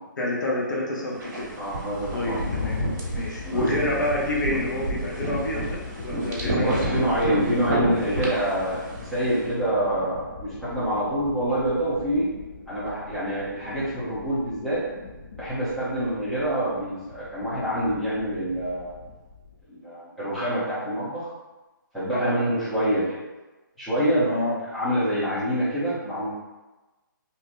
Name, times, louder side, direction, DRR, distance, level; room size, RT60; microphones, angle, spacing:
voice 1, 0.2-1.6 2.1-2.8 3.1-6.9 22.1-22.4 24.2-24.6, left 1 dB, 60° left, -3 dB, 1.0 m, -28 dB
sound 1, 1.2-9.4, right 2 dB, 45° right, 1.3 m, -31 dB
sound 2, 1.6-19.6, left 4 dB, 35° left, 0.4 m, -38 dB
voice 2, 1.6-2.7 3.4-3.7 6.4-12.3 12.7-14.8 15.3-18.9 19.7-21.3 21.9-23.2 23.8-24.4 24.7-26.3, right 1 dB, ahead, -14 dB, 0.8 m, -26 dB
3.7 x 2.8 x 2.6 m, 1.1 s
hypercardioid pair, 160°, 11 cm